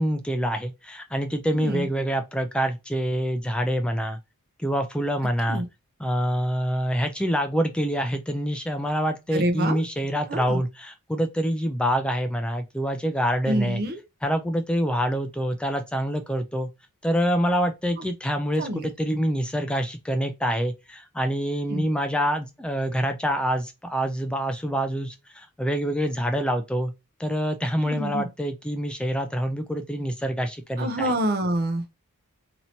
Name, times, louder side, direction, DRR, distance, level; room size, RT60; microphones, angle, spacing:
voice 1, 0.0-4.2 4.6-5.6 6.0-13.8 14.2-16.7 17.0-26.9 27.2-31.1, equal, 5° left, 0.3 m, -26 dB
voice 2, 1.5-1.9 5.5-5.7 9.3-9.8 10.3-10.6 13.5-14.0 18.0-18.1 18.6-18.9 21.7-21.8 27.8-28.3 30.8-31.9, right 1 dB, 45° right, 0.6 m, -27 dB
2.9 x 2.7 x 4.3 m
head